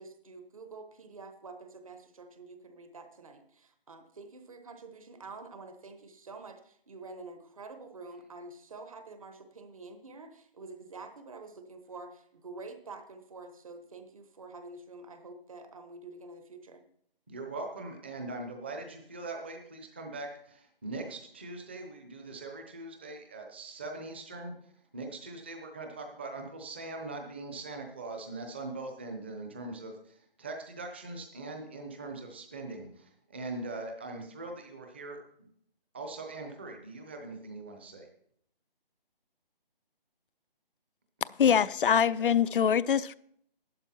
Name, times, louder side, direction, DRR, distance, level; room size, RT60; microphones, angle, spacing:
voice 1, 0.0-16.8, right 3 dB, 35° right, 1.1 m, -47 dB
voice 2, 17.3-24.5 24.9-35.2 35.9-38.1 41.5-41.6 42.2-42.3, right 2 dB, 10° right, 0.8 m, -41 dB
voice 3, 41.4-43.1, left 8 dB, 65° left, 0.5 m, -24 dB
12.0 x 11.5 x 4.3 m
hypercardioid pair, 170°, 29 cm